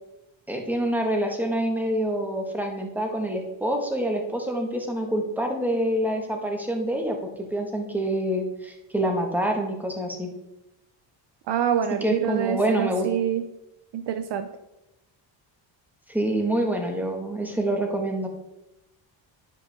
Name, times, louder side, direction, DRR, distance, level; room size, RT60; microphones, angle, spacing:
voice 1, 0.5-10.3 12.0-13.1 16.1-18.3, right 1 dB, 5° right, 2 dB, 1.7 m, -26 dB
voice 2, 11.5-13.4 13.9-14.5, right 9 dB, 60° right, 10 dB, 0.6 m, -26 dB
10.5 x 5.2 x 3.7 m, 0.91 s
cardioid pair, 95°, 48 cm